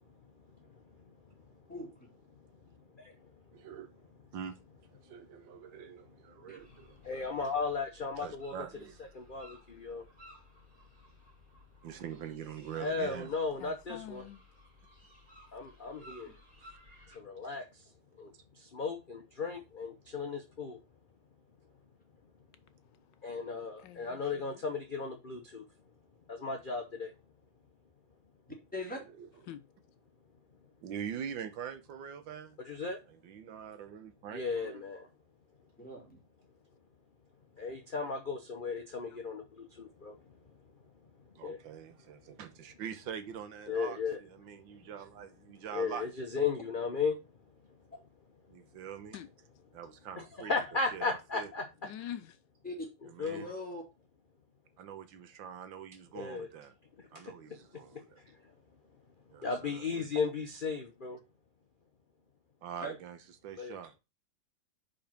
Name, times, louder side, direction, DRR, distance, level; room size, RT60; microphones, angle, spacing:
voice 1, 0.7-1.1 2.9-3.3 7.0-8.5 9.1-10.0 12.8-14.2 15.5-16.3 17.1-17.8 18.2-20.8 23.2-25.6 26.3-27.1 32.6-33.0 34.3-35.1 37.6-40.3 41.4-41.6 43.7-44.2 45.7-47.2 50.4-51.6 53.2-53.5 56.1-56.5 57.0-57.6 57.9-58.5 59.4-61.2 63.6-63.7, left 4 dB, 40° left, 0.8 m, -36 dB
voice 2, 1.7-2.1 6.5-6.6 28.7-29.0 35.8-36.2 47.9-48.0 52.6-52.9 53.3-53.8 59.5-60.0 62.8-63.0, left 1 dB, 5° left, 2.7 m, -42 dB
voice 3, 3.5-4.0 4.3-4.6 4.9-7.4 8.2-9.0 11.8-13.3 16.6-16.8 17.4-17.5 28.9-29.3 30.8-32.6 33.1-34.8 41.3-46.1 48.5-49.2 49.7-50.5 50.9-51.5 53.1-53.5 54.8-56.7 57.1-58.2 59.3-59.8 62.6-63.9, right 8 dB, 80° right, 1.6 m, -44 dB
sound 1, 6.6-17.2, left 1 dB, 30° right, 4.0 m, -58 dB
voice 4, 13.6-14.4 23.8-24.6 29.5-29.6 39.1-39.2 49.1-49.3 51.8-52.4, left 11 dB, 75° left, 1.2 m, -45 dB
5.2 x 5.0 x 5.8 m
omnidirectional pair, 2.0 m